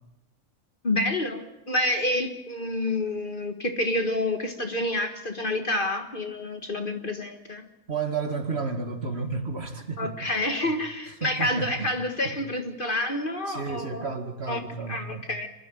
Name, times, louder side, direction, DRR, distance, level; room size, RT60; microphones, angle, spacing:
voice 1, 0.8-7.7 10.0-14.0 14.5-14.6 14.9-15.5, left 1 dB, 35° left, 6 dB, 1.8 m, -28 dB
voice 2, 7.9-10.3 10.6-10.7 11.2-11.9 12.2-12.4 13.5-15.3, right 4 dB, 45° right, 6 dB, 2.0 m, -32 dB
25.5 x 13.0 x 9.0 m, 0.94 s
omnidirectional pair, 1.5 m